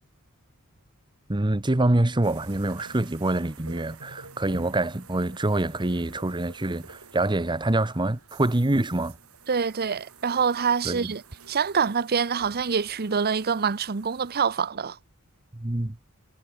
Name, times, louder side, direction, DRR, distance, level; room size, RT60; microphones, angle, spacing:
voice 1, 1.3-9.2 10.8-11.1 15.5-16.0, right 2 dB, 20° right, 1.0 m, -25 dB
sound 1, 2.2-14.7, right 4 dB, 75° right, 5.0 m, -50 dB
voice 2, 9.5-15.0, right 6 dB, 45° right, 0.8 m, -26 dB
head